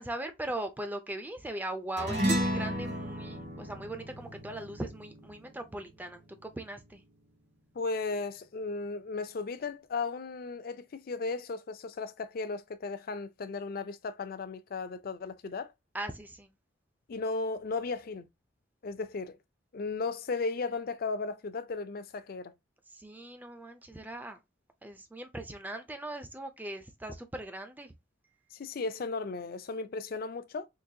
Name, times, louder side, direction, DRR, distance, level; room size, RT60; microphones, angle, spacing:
voice 1, 0.0-7.0 15.9-16.5 22.9-24.4 24.8-27.9, right 1 dB, 10° right, 0.4 m, -39 dB
sound 1, 2.0-6.7, equal, 65° right, 1.9 m, -34 dB
voice 2, 7.7-15.7 17.1-18.3 18.8-19.4 19.7-22.5 28.5-30.7, left 4 dB, 55° left, 0.4 m, -35 dB
3.9 x 2.6 x 2.7 m
head